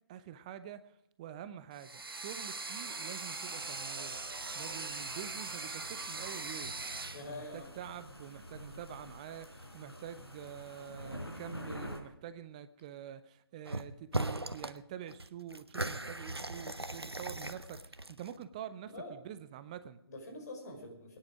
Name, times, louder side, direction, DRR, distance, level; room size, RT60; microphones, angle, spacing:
voice 1, 0.1-6.7 7.3-20.0, right 10 dB, 15° right, 13 dB, 0.5 m, -47 dB
sound 1, 1.7-7.3, right 3 dB, 65° right, 1.2 m, -41 dB
sound 2, 3.4-12.0, equal, 85° left, 4.5 m, -48 dB
voice 2, 7.1-7.7 18.8-19.1 20.1-21.2, left 2 dB, 40° left, 2 dB, 5.1 m, -45 dB
sound 3, 13.6-13.8 14.1-14.8 15.1-18.4, right 1 dB, 85° right, 1.1 m, -38 dB
22.5 x 10.0 x 5.0 m, 0.79 s
figure-of-eight pair, 140°, 13 cm